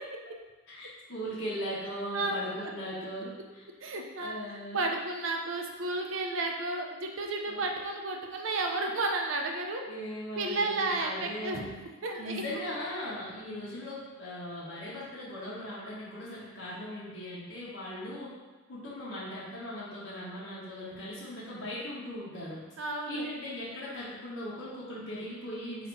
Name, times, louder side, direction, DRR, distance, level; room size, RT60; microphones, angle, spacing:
voice 1, 0.7-3.6 4.2-4.8 7.5-7.6 9.9-11.7 12.2-18.3 18.7-22.6 23.1-25.9, equal, 70° left, -8 dB, 1.3 m, -39 dB
voice 2, 3.8-4.3 4.7-9.8 10.4-11.6 12.0-12.7 22.8-23.3, right 2 dB, 75° right, 2 dB, 0.6 m, -32 dB
4.0 x 2.9 x 4.6 m, 1.2 s
head